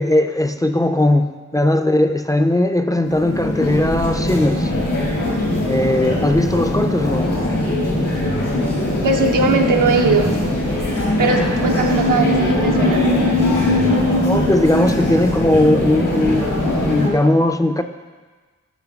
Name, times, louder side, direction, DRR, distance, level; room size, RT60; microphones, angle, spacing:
voice 1, 0.0-4.7 5.7-7.4 14.2-17.8, left 1 dB, 10° left, 7 dB, 0.3 m, -18 dB
sound 1, 3.0-17.1, left 1 dB, 80° left, 1.8 m, -21 dB
sound 2, 8.6-16.9, left 1 dB, 65° left, 0.7 m, -23 dB
voice 2, 9.0-10.3 11.2-13.1, right 4 dB, 90° right, 3 dB, 0.6 m, -19 dB
10.0 x 5.5 x 2.3 m, 1.4 s
cardioid pair, 45°, 31 cm